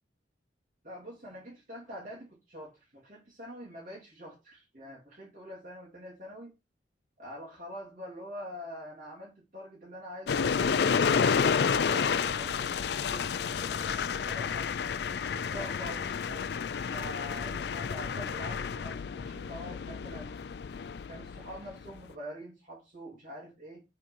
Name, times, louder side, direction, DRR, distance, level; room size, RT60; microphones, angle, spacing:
voice 1, 0.8-6.5 7.2-14.7 15.3-20.3 21.1-23.8, equal, 45° right, 2.3 m, -45 dB
sound 1, 10.3-22.0, left 6 dB, 60° left, 0.4 m, -30 dB
5.1 x 4.4 x 5.4 m
head